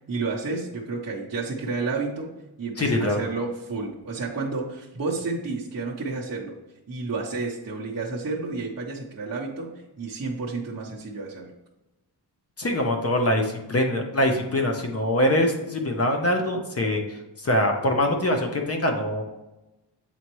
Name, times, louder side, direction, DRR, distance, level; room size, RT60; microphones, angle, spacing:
voice 1, 0.1-2.3 2.6-6.6 6.9-11.5, right 3 dB, 40° right, -5 dB, 0.9 m, -31 dB
voice 2, 2.8-3.2 12.6-19.2, left 1 dB, 35° left, 3 dB, 0.8 m, -23 dB
7.7 x 4.2 x 3.0 m, 0.99 s
wide cardioid pair, 155°, 42 cm